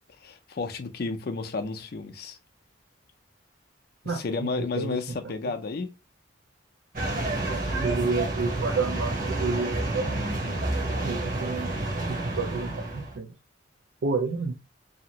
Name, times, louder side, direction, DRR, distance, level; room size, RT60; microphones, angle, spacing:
voice 1, 0.2-2.4 4.0-5.9, left 4 dB, 50° left, 0.4 m, -32 dB
sound 1, 6.9-13.2, right 2 dB, 45° right, 1.0 m, -29 dB
voice 2, 7.5-10.7 11.0-11.8 12.1-13.3 14.0-14.5, right 4 dB, 65° right, 0.4 m, -30 dB
2.8 x 2.5 x 2.8 m
head